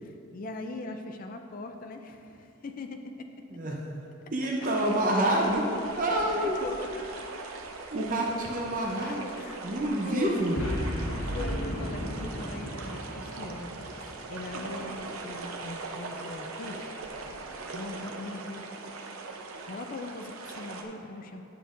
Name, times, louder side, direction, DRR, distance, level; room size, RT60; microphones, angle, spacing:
voice 1, 0.0-3.3 6.1-6.9 7.1-7.4 9.0-9.6 10.0-10.5 10.9-16.9 17.7-18.6 19.6-21.4, left 2 dB, 40° left, 5 dB, 0.4 m, -41 dB
voice 2, 4.3-5.7 6.0-6.5 7.9-9.3 9.6-10.6, right 1 dB, 40° right, -2 dB, 0.7 m, -27 dB
sound 1, 4.6-20.8, right 3 dB, 80° right, 0.6 m, -41 dB
Boom, 10.5-14.9, equal, 90° left, 1.3 m, -35 dB
10.0 x 6.7 x 2.5 m, 2.9 s
head